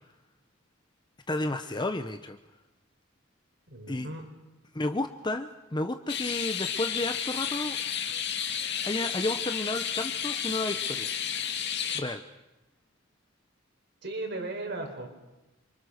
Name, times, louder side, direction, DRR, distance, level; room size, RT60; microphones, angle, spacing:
voice 1, 1.3-2.4 3.9-4.1 4.7-7.8 8.8-11.1 11.9-12.2, left 2 dB, 20° left, 8 dB, 0.9 m, -32 dB
voice 2, 3.7-4.3 14.0-15.1, right 2 dB, 55° right, 4 dB, 4.7 m, -36 dB
sound 1, 6.1-12.0, left 8 dB, 55° left, 2.4 m, -32 dB
28.0 x 25.5 x 6.6 m, 1.0 s
head